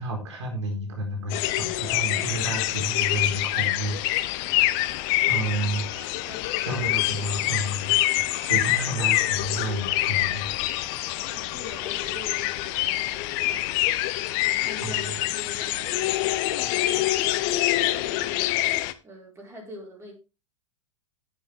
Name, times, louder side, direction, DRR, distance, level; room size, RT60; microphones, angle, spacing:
voice 1, 0.0-4.4 4.8-4.9 5.2-6.1 6.6-10.5 14.8-15.0, right 1 dB, 65° right, 4.2 m, -31 dB
sound 1, 1.3-18.9, left 16 dB, 45° left, 0.8 m, -26 dB
voice 2, 6.2-6.8 11.2-13.9 14.3-18.7 19.0-20.1, equal, 15° right, 4.9 m, -46 dB
10.0 x 9.7 x 3.4 m
figure-of-eight pair, 100°, 16 cm